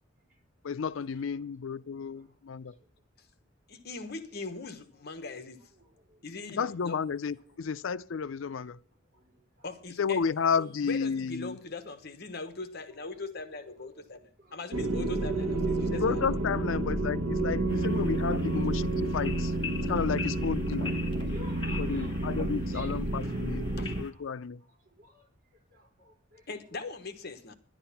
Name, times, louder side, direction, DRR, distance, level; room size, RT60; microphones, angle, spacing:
voice 1, 0.6-2.7 6.6-8.8 10.0-11.5 15.9-19.5 19.9-20.9 21.8-24.6, left 6 dB, 85° left, 0.5 m, -32 dB
voice 2, 3.7-5.7 6.2-7.0 9.6-10.2 10.6-16.2 19.8-19.9 23.2-23.3 23.8-24.0 26.5-27.5, left 3 dB, 55° left, 1.2 m, -41 dB
sound 1, 14.7-24.0, right 2 dB, 80° right, 1.1 m, -30 dB
sound 2, 17.7-24.1, left 4 dB, 25° left, 2.1 m, -43 dB
voice 3, 20.7-22.1 22.7-23.3 23.7-23.8 25.0-25.3 25.7-26.4, equal, 50° right, 4.2 m, -50 dB
11.0 x 11.0 x 5.8 m
head